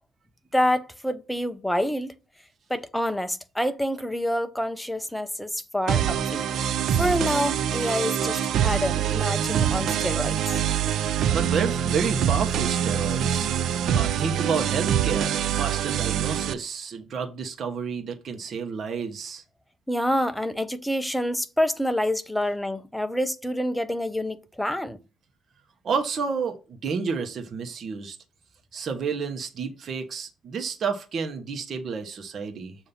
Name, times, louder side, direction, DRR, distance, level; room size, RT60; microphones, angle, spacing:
voice 1, 0.5-2.1 2.7-6.4 7.0-10.6 19.9-25.0, equal, 5° left, 0.8 m, -27 dB
Heavy Dance Loop, 5.9-16.5, right 9 dB, 75° right, 0.5 m, -25 dB
voice 2, 11.3-13.5 13.9-19.4 25.8-28.2 28.7-32.8, right 5 dB, 55° right, 1.0 m, -30 dB
6.8 x 2.8 x 5.6 m
cardioid pair, 90°, 0 cm